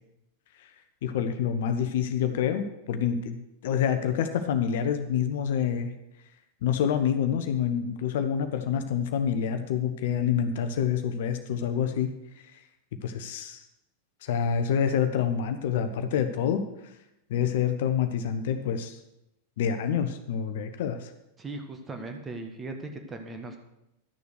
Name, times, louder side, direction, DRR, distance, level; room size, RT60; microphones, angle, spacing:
voice 1, 1.0-3.4 3.6-5.9 6.6-12.2 13.0-13.6 14.2-16.6 17.3-19.0 19.6-21.1, left 8 dB, 55° left, 8 dB, 0.9 m, -27 dB
voice 2, 21.4-23.6, right 2 dB, 15° right, 5 dB, 1.5 m, -38 dB
12.0 x 6.9 x 6.5 m, 0.89 s
figure-of-eight pair, 90°, 0 cm